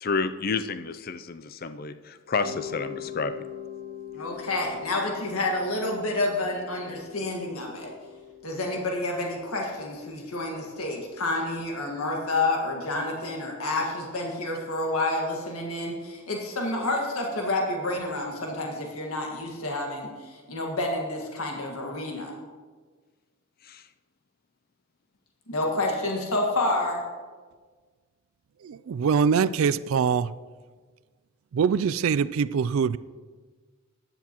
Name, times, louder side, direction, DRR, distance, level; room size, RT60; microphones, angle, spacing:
voice 1, 0.0-3.5 23.6-23.9, left 4 dB, 45° left, 11 dB, 0.5 m, -30 dB
Mallet percussion, 2.4-11.2, left 9 dB, 45° right, 1.4 m, -43 dB
voice 2, 4.1-7.9 8.4-22.3 25.5-27.1, left 2 dB, 80° left, 0 dB, 1.7 m, -29 dB
voice 3, 28.6-30.3 31.5-33.0, right 6 dB, 70° right, 17 dB, 0.3 m, -23 dB
15.5 x 10.5 x 3.0 m, 1.5 s
head